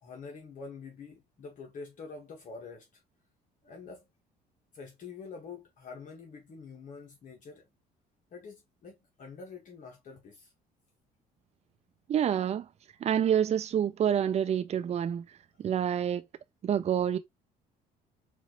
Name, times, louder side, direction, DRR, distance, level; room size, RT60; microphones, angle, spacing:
voice 1, 0.0-2.9 3.6-4.1 4.7-7.7 8.3-10.5, left 4 dB, 50° left, 1.3 m, -46 dB
voice 2, 12.1-12.7 13.0-15.2 15.6-16.2 16.6-17.2, right 9 dB, 40° right, 0.5 m, -27 dB
4.2 x 2.6 x 2.9 m
cardioid pair, 110°, 17 cm